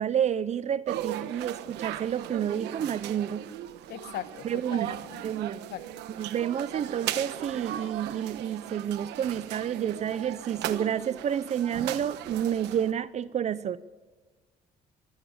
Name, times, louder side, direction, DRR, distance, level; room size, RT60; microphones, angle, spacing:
voice 1, 0.0-3.4 4.4-5.6 6.2-13.8, right 9 dB, 40° right, 17 dB, 0.6 m, -30 dB
sound 1, 0.9-12.9, right 12 dB, 85° right, 1.2 m, -37 dB
voice 2, 3.9-5.2 5.7-5.8, left 12 dB, 75° left, 13 dB, 1.2 m, -39 dB
24.0 x 15.5 x 7.2 m, 1.3 s
cardioid pair, 110°, 17 cm